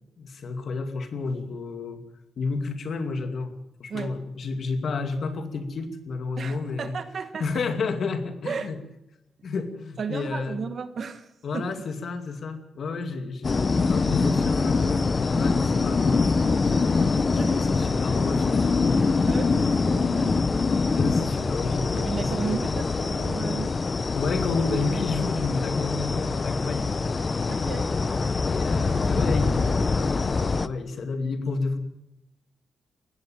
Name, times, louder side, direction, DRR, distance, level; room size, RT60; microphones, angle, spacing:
voice 1, 0.2-2.0 2.4-3.5 3.8-7.0 7.4-8.8 9.4-10.6 11.4-16.8 17.1-19.3 20.9-22.6 24.1-27.0 28.5-29.9 30.3-31.8, left 4 dB, 45° left, 8 dB, 2.6 m, -31 dB
voice 2, 6.4-7.5 8.4-8.7 10.0-11.7 17.4-17.6 19.2-20.4 22.0-23.7 27.5-27.9, right 6 dB, 40° right, 11 dB, 1.4 m, -34 dB
sound 1, 13.4-30.7, left 4 dB, 25° left, 0.7 m, -24 dB
19.5 x 15.5 x 9.1 m, 0.87 s
wide cardioid pair, 180°, 0 cm